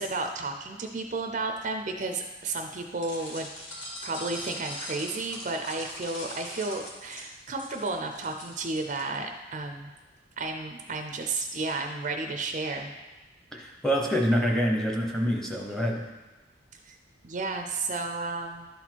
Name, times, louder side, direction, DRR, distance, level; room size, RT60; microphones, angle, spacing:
voice 1, 0.0-3.5 4.0-9.9 10.4-12.9 16.9-17.0 17.2-18.7, right 3 dB, 40° right, 4 dB, 0.5 m, -32 dB
sound 1, 3.0-9.0, left 1 dB, 75° left, 2.4 m, -41 dB
voice 2, 13.5-16.0, equal, 5° left, 0 dB, 0.8 m, -26 dB
11.5 x 4.2 x 4.5 m, 1.2 s
head